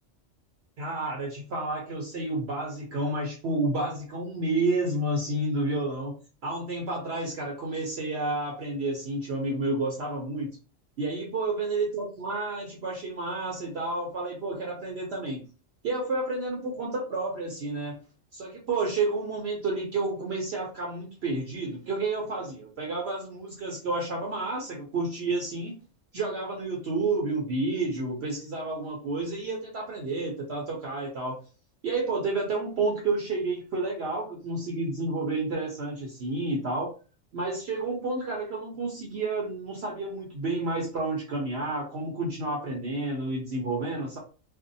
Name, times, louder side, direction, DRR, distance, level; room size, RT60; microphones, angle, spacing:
voice 1, 0.8-6.2 6.4-10.5 11.0-15.4 15.8-18.0 18.3-25.7 26.1-31.4 31.8-36.9 37.3-44.2, right 2 dB, 60° right, -1 dB, 0.8 m, -30 dB
2.6 x 2.1 x 2.6 m, 0.36 s
omnidirectional pair, 1.4 m